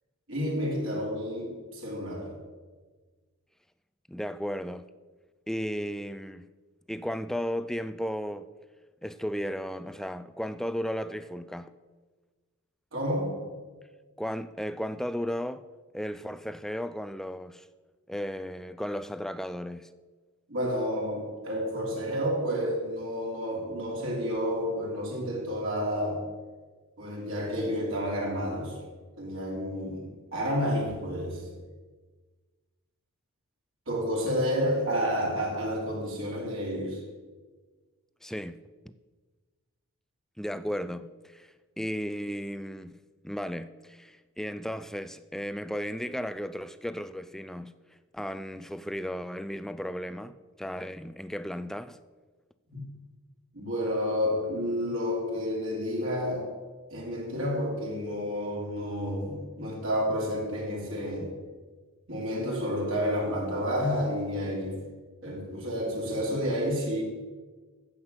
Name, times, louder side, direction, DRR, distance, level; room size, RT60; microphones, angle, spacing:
voice 1, 0.3-2.4 12.9-13.5 20.5-26.2 27.0-28.8 29.2-31.5 33.9-37.0 52.7-52.8 53.5-56.5 56.9-61.3 62.1-64.8 65.2-67.0, equal, 60° right, 3.1 m, -30 dB
voice 2, 4.1-4.9 5.5-6.5 6.9-8.5 9.0-11.8 14.2-15.6 15.9-17.7 18.1-19.9 38.2-38.7 40.4-47.7 48.1-52.0, equal, ahead, 0.3 m, -35 dB
9.6 x 8.0 x 7.9 m
head